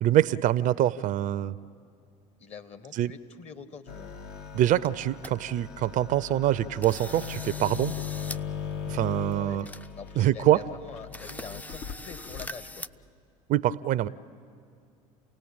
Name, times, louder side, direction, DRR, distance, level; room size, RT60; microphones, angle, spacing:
voice 1, 0.0-1.6 2.9-3.1 4.5-7.9 8.9-9.7 10.2-10.6 13.5-14.1, right 13 dB, 50° right, 17 dB, 0.5 m, -24 dB
voice 2, 2.4-4.1 9.3-9.7 9.9-12.8, left 6 dB, 40° left, 11 dB, 1.6 m, -44 dB
sound 1, 3.9-12.5, left 7 dB, 65° left, 1.5 m, -39 dB
sound 2, 4.8-5.3 5.8-5.9 6.3-6.5 6.8-8.4 8.7-8.8 9.3-9.4 9.6-10.3 10.6-10.7 11.1-12.9, left 1 dB, 10° left, 0.5 m, -42 dB
29.0 x 17.5 x 8.7 m, 2.4 s
hypercardioid pair, 80°, 17 cm